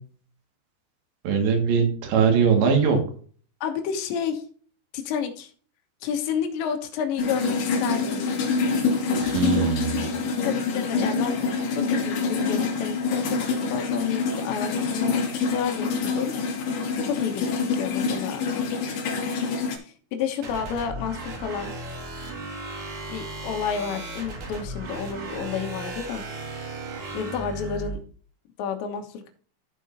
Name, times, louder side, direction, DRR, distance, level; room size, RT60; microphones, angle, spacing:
voice 1, 1.2-3.0 9.2-10.0, right 6 dB, 70° right, 4 dB, 4.1 m, -21 dB
voice 2, 3.6-4.4 4.9-5.5 6.0-8.2 10.4-11.3 11.7-16.3 17.0-18.5 19.8-21.7 23.1-26.2 27.1-28.0 28.6-29.3, left 7 dB, 75° left, 3 dB, 3.5 m, -30 dB
sound 1, 7.2-19.8, left 4 dB, 55° left, 2.3 m, -26 dB
sound 2, 20.4-28.0, right 2 dB, 50° right, 3.6 m, -36 dB
14.0 x 5.3 x 2.7 m, 0.44 s
omnidirectional pair, 5.4 m